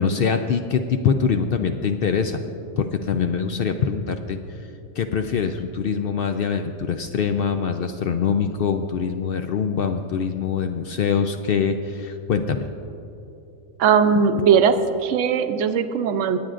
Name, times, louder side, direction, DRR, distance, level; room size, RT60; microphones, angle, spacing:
voice 1, 0.0-2.4 2.8-4.4 5.0-12.7, left 6 dB, 65° left, 6 dB, 0.6 m, -23 dB
voice 2, 13.8-14.7 15.0-16.4, right 7 dB, 70° right, 9 dB, 0.9 m, -18 dB
26.0 x 8.9 x 2.5 m, 2.9 s
omnidirectional pair, 1.4 m